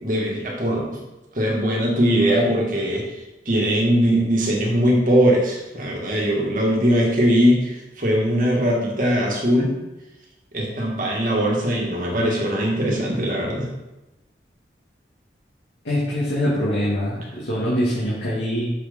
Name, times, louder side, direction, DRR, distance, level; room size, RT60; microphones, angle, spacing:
voice 1, 0.0-1.0 1.3-9.8 10.5-13.7, equal, 45° right, -2 dB, 1.7 m, -20 dB
voice 2, 15.8-18.7, equal, 85° left, -8 dB, 2.0 m, -23 dB
6.6 x 4.4 x 5.2 m, 1.0 s
head